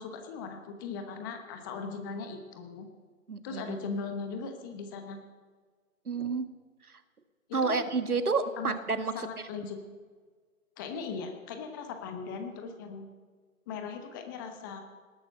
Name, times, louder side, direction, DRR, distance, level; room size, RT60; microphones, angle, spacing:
voice 1, 0.0-2.9 3.4-5.2 7.6-7.8 8.6-8.7 9.1-9.8 10.8-13.1 13.7-14.8, left 5 dB, 15° left, 6 dB, 1.0 m, -38 dB
voice 2, 3.3-3.8 6.1-6.5 7.5-9.5, right 4 dB, 80° right, 9 dB, 1.8 m, -30 dB
19.0 x 11.5 x 6.6 m, 1.5 s
figure-of-eight pair, 145°, 44 cm